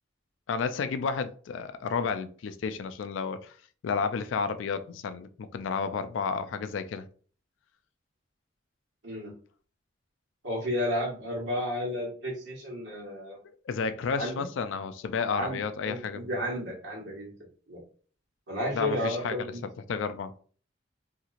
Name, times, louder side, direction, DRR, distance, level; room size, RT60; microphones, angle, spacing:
voice 1, 0.5-3.5 3.8-7.0 13.6-16.3 18.7-19.5 19.9-20.3, left 5 dB, 80° left, 0.3 m, -31 dB
voice 2, 10.4-13.4 14.2-14.4 15.3-17.3 17.7-17.8 18.5-19.6, equal, 70° right, 1.5 m, -32 dB
2.9 x 2.8 x 2.4 m
head